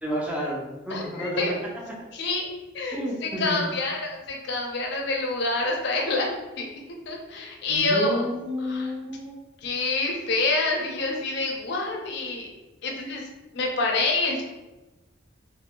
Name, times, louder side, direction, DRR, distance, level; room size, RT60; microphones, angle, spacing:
voice 1, 0.0-1.4 2.9-3.6 7.7-9.4, equal, 5° right, -3 dB, 0.4 m, -30 dB
voice 2, 0.9-1.6 2.1-2.5 2.7-3.0 3.4-6.7 7.1-8.2 8.7-8.9 9.6-12.5 12.8-13.3 13.5-14.4, left 3 dB, 60° left, 1 dB, 0.5 m, -27 dB
2.5 x 2.0 x 2.8 m, 1.1 s
head